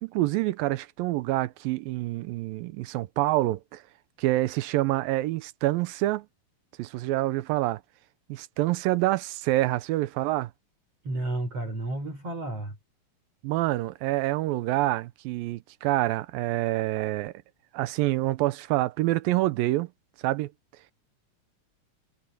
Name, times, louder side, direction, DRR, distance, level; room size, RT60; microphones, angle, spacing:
voice 1, 0.0-3.8 4.2-6.3 6.8-7.8 8.3-10.5 13.4-17.3 17.7-19.9 20.2-20.5, right 17 dB, 90° right, 2.5 m, -27 dB
voice 2, 11.0-12.8, right 2 dB, 40° right, 6.3 m, -32 dB
omnidirectional pair, 4.1 m